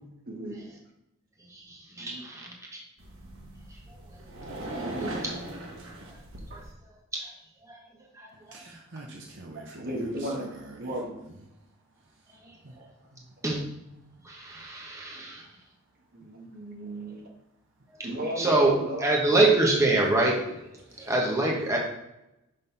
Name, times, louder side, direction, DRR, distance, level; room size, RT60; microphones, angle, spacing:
voice 1, 0.3-0.7 2.0-2.3 4.8-5.1 6.5-6.6 9.7-11.2 12.8-12.9 16.1-17.3 18.0-19.4, right 1 dB, 50° right, -1 dB, 1.6 m, -35 dB
voice 2, 1.7-2.8 7.7-7.8 8.2-8.3 13.4-13.6 14.3-15.4 18.4-18.7 19.0-20.6 21.0-21.8, right 2 dB, 15° right, -2 dB, 1.1 m, -25 dB
sound 1, 3.0-6.7, right 1 dB, 85° right, 1.4 m, -39 dB
voice 3, 8.5-9.8 10.3-10.5 12.6-12.7, right 2 dB, 65° right, 0 dB, 0.8 m, -45 dB
5.4 x 4.1 x 5.6 m, 0.89 s
head